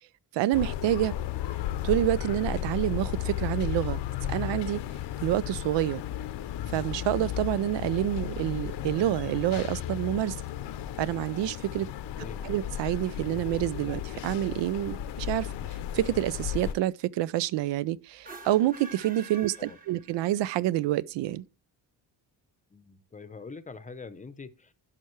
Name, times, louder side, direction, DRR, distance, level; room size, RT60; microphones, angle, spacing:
voice 1, 0.3-1.1 1.8-4.0 4.3-4.8 5.2-6.0 6.7-10.4 11.0-11.9 12.4-15.5 15.9-21.4, right 13 dB, 85° right, 0.5 m, -28 dB
sound 1, 0.5-16.7, left 11 dB, 75° left, 0.8 m, -34 dB
sound 2, 18.1-20.5, right 4 dB, 20° right, 1.0 m, -47 dB
voice 2, 22.7-24.7, left 4 dB, 20° left, 0.7 m, -44 dB
15.5 x 5.8 x 3.1 m
cardioid pair, 140°, 42 cm